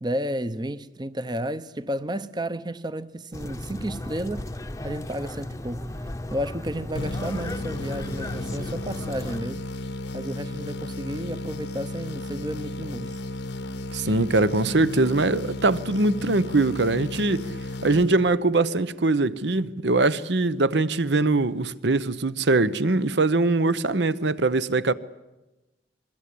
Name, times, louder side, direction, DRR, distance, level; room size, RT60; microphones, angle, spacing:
voice 1, 0.0-4.5 4.8-5.9 6.3-9.7 10.1-13.2, right 1 dB, 25° right, 0.8 m, -32 dB
sound 1, 3.3-9.4, left 1 dB, 15° left, 0.8 m, -35 dB
sound 2, 6.9-18.7, left 2 dB, 75° left, 1.1 m, -34 dB
voice 2, 13.9-17.5 17.8-24.9, right 2 dB, 70° right, 0.9 m, -22 dB
25.0 x 22.5 x 8.5 m
head